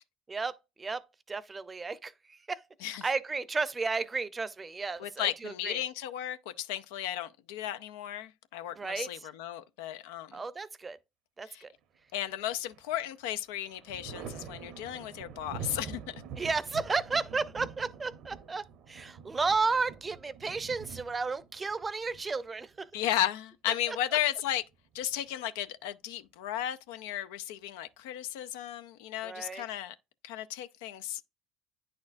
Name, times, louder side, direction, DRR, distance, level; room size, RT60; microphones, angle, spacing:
voice 1, 0.3-2.6 2.9-5.8 8.8-9.3 10.3-11.0 11.4-11.7 16.4-22.9 23.9-24.0 29.2-29.6, right 4 dB, 25° right, 0.6 m, -33 dB
voice 2, 5.0-10.4 11.4-11.6 12.1-16.1 22.9-24.6 24.9-30.0 30.2-31.2, left 12 dB, 80° left, 0.5 m, -34 dB
Thunder, 12.2-13.0 13.4-23.0 24.5-25.3, right 6 dB, 65° right, 0.8 m, -46 dB
9.5 x 4.3 x 2.5 m
supercardioid pair, 80°, 0 cm